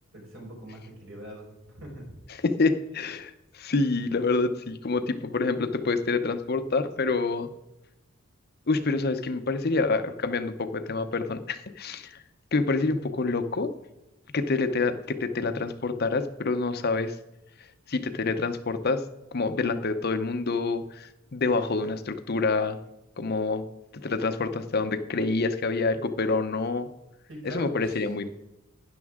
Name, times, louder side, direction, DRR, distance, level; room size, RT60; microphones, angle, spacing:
voice 1, 0.1-2.1 27.3-28.0, right 1 dB, 70° right, -1 dB, 4.6 m, -42 dB
voice 2, 2.3-7.5 8.7-12.2 12.5-13.7 14.3-17.2 17.9-19.0 19.3-22.8 23.2-23.7 24.0-26.9 27.4-28.3, left 3 dB, 45° left, 10 dB, 0.7 m, -27 dB
12.5 x 10.0 x 3.6 m, 0.93 s
head